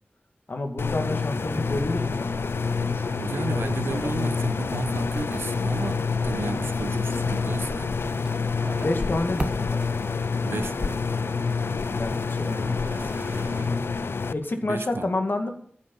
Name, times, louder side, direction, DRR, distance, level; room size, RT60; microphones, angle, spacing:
voice 1, 0.5-2.5 2.8-3.2 3.5-4.1 8.8-9.8 12.0-13.1 13.7-14.0 14.3-15.5, left 2 dB, 60° left, 2.2 m, -30 dB
sound 1, 0.8-14.3, left 5 dB, 80° left, 0.5 m, -27 dB
sound 2, 1.3-13.7, right 1 dB, 60° right, 2.4 m, -42 dB
voice 2, 3.2-8.0 10.4-11.0 14.6-15.2, right 3 dB, 80° right, 0.9 m, -33 dB
sound 3, 4.9-10.2, right 1 dB, 25° right, 1.3 m, -38 dB
14.5 x 8.2 x 5.5 m
wide cardioid pair, 60°, 4 cm